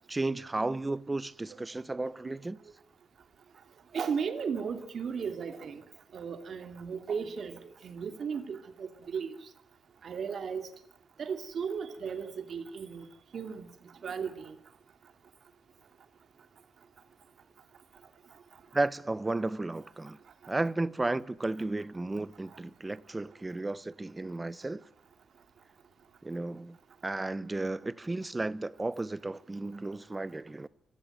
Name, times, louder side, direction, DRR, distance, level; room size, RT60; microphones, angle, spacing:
voice 1, 0.1-2.6 18.7-20.2 20.5-24.8 26.2-26.8 27.0-30.7, right 2 dB, 20° right, 0.9 m, -33 dB
voice 2, 3.9-5.8 6.1-9.3 10.0-10.7 11.2-13.0 13.3-13.7 14.0-14.5, right 6 dB, 65° right, 2.7 m, -35 dB
25.0 x 17.0 x 9.1 m
cardioid pair, 110°, 0 cm